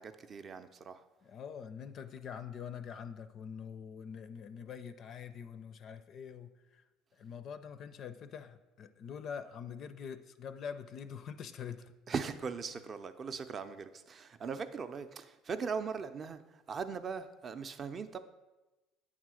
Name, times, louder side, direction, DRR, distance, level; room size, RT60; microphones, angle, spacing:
voice 1, 0.0-1.0 12.1-18.2, right 5 dB, 30° right, 0.5 m, -40 dB
voice 2, 1.2-6.8 7.1-11.9, left 7 dB, 45° left, 0.4 m, -45 dB
8.8 x 3.7 x 6.2 m
cardioid pair, 135°, 0 cm